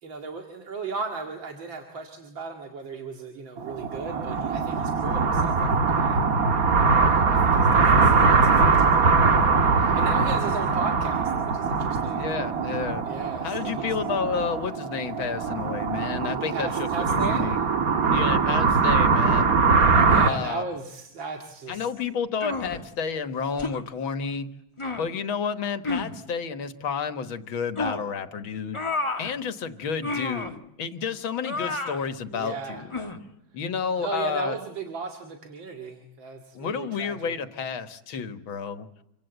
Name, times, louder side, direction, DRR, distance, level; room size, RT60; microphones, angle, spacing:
voice 1, 0.0-6.3 7.0-9.4 9.7-12.3 13.1-14.0 16.5-17.5 20.1-21.9 32.3-32.8 34.0-37.4, right 4 dB, 70° right, 3 dB, 2.9 m, -36 dB
sound 1, 3.6-20.3, right 4 dB, 50° right, 1.9 m, -22 dB
voice 2, 12.2-13.1 13.4-17.6 18.1-19.6 20.2-20.6 21.7-24.5 25.0-28.8 29.2-32.9 33.5-34.6 36.5-38.9, left 6 dB, 80° left, 9 dB, 2.2 m, -31 dB
sound 2, 22.4-22.8 23.6-23.8 24.8-25.1 25.8-26.2 27.8-28.1 28.7-29.3 30.0-30.5 31.4-32.1 32.9-33.2, left 3 dB, 15° left, 1.7 m, -30 dB
28.0 x 24.5 x 8.0 m, 0.82 s
omnidirectional pair, 2.2 m